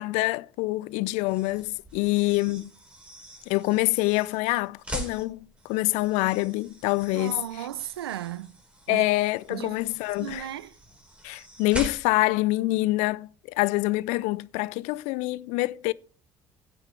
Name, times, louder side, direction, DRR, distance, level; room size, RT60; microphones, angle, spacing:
voice 1, 0.0-2.7 3.5-7.4 8.9-10.5 11.2-15.9, left 20 dB, 70° left, 0.4 m, -26 dB
sound 1, 1.2-12.4, right 1 dB, 10° right, 5.2 m, -43 dB
voice 2, 7.1-8.5 8.9-9.1 9.5-9.8 10.2-10.7, right 12 dB, 85° right, 0.5 m, -35 dB
16.0 x 9.6 x 3.3 m
hypercardioid pair, 55°, 13 cm